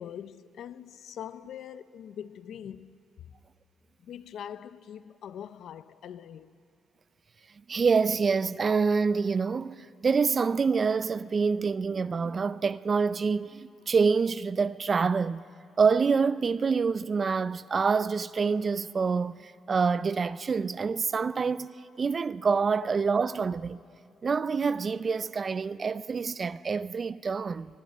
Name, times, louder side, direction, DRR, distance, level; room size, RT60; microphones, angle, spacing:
voice 1, 0.0-3.0 4.0-6.5, left 9 dB, 70° left, 0.7 m, -42 dB
voice 2, 7.7-15.4 15.8-21.7 22.0-23.8 24.2-27.7, right 5 dB, 40° right, 0.4 m, -26 dB
22.0 x 22.0 x 5.5 m
cardioid pair, 90°, 0 cm